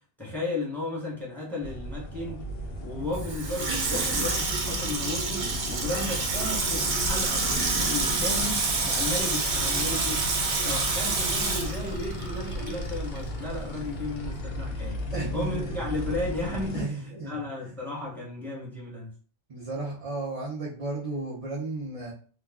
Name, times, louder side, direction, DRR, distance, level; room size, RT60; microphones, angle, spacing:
voice 1, 0.2-2.4 2.8-10.2 10.6-15.0 15.3-19.1, left 2 dB, ahead, -4 dB, 0.9 m, -34 dB
sound 1, 1.6-16.8, equal, 65° left, 0.7 m, -35 dB
Water tap faucet / Sink (filling or washing), 3.1-12.8 13.2-13.3, right 3 dB, 70° right, 1.0 m, -28 dB
voice 2, 15.1-16.1 16.7-17.3 19.5-22.1, right 2 dB, 40° right, -5 dB, 0.5 m, -34 dB
2.3 x 2.2 x 3.4 m, 0.42 s
omnidirectional pair, 1.2 m